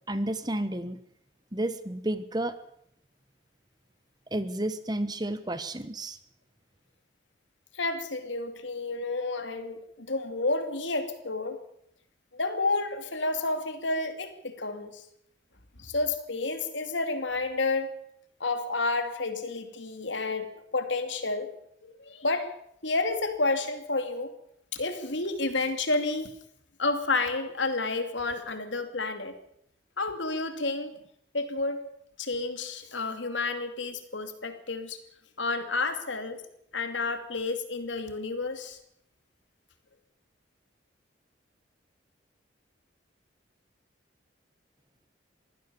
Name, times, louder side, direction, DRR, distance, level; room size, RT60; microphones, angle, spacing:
voice 1, 0.1-1.0 1.5-2.5 4.3-6.2, right 1 dB, 20° right, 13 dB, 1.1 m, -31 dB
voice 2, 7.7-11.6 12.3-15.0 15.8-17.9 18.4-20.5 20.7-21.5 21.8-22.5 22.8-24.3 24.7-26.3 26.8-29.4 30.0-30.9 31.3-31.9 32.2-35.0 35.4-36.4 36.7-38.8, left 3 dB, 70° left, 8 dB, 2.7 m, -30 dB
23.0 x 16.0 x 7.0 m, 0.72 s
head